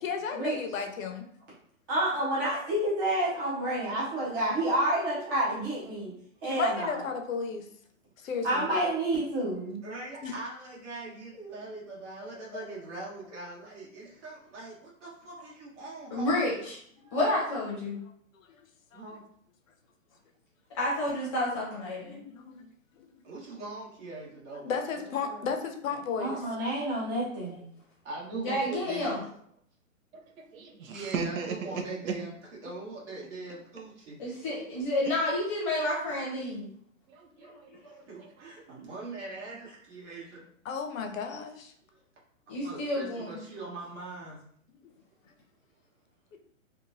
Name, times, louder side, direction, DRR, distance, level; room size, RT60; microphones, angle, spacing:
voice 1, 0.0-1.3 6.4-7.7 8.2-8.7 10.2-10.3 18.0-18.1 18.5-18.6 18.9-19.0 22.0-22.7 23.0-23.1 24.6-26.4 40.6-41.7 46.3-46.4, left 6 dB, 70° left, 5 dB, 0.6 m, -34 dB
voice 2, 1.9-6.1 6.4-7.1 8.4-9.8 26.2-27.7, right 1 dB, 15° right, -8 dB, 0.5 m, -29 dB
voice 3, 9.8-16.5 18.9-19.2 23.2-25.5 28.0-29.1 30.9-32.3 32.6-34.2 38.1-40.4 42.5-44.4, right 2 dB, 55° right, -4 dB, 1.2 m, -42 dB
voice 4, 16.1-16.8 17.1-18.0 20.7-22.2 28.3-29.2 34.2-36.7 37.4-37.8 42.5-43.4, left 1 dB, 25° left, -4 dB, 0.7 m, -30 dB
voice 5, 28.3-29.2 30.1-32.1 35.0-35.1 37.1-37.8 38.1-38.5 38.9-39.6 40.1-40.2 42.6-43.9 44.1-44.2, right 5 dB, 75° right, 4 dB, 0.6 m, -39 dB
2.9 x 2.2 x 2.5 m, 0.65 s
hypercardioid pair, 155°, 41 cm